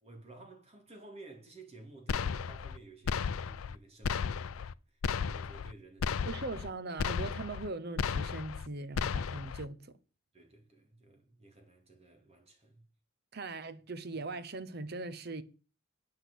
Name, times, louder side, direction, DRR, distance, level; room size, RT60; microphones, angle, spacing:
voice 1, 0.0-6.4 10.3-12.8, right 2 dB, 30° right, 2.6 m, -53 dB
sound 1, 2.1-2.8 3.1-3.8 4.0-4.7 5.0-5.7 6.0-6.7 7.0-7.7 8.0-8.7 9.0-9.6, left 6 dB, 90° left, 0.4 m, -34 dB
voice 2, 6.3-10.0 13.3-15.4, right 3 dB, 50° right, 0.8 m, -40 dB
8.7 x 6.0 x 8.3 m
head